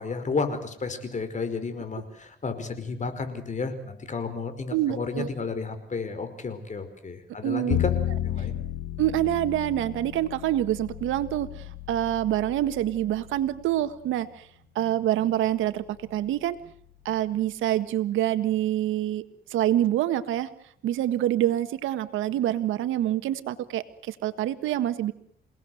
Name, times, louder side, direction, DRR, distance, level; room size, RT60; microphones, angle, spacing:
voice 1, 0.0-7.9 8.2-8.6, left 4 dB, 40° left, 9 dB, 5.1 m, -32 dB
voice 2, 4.7-5.3 7.4-7.8 9.0-14.5 14.7-16.6 17.0-19.2 19.5-20.5 20.8-25.1, right 13 dB, 90° right, 11 dB, 1.7 m, -26 dB
Bowed string instrument, 7.7-13.9, left 12 dB, 80° left, 1.5 m, -33 dB
28.5 x 18.5 x 7.9 m, 0.65 s
cardioid pair, 90°, 20 cm